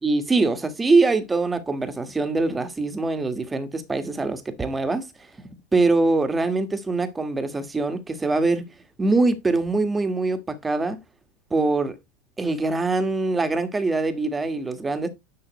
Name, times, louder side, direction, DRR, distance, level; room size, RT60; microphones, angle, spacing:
voice 1, 0.0-5.1 5.7-8.7 9.0-11.0 11.5-12.0 12.4-15.1, right 3 dB, 15° right, 1.6 m, -23 dB
10.5 x 5.7 x 3.1 m
hypercardioid pair, 105°, 0 cm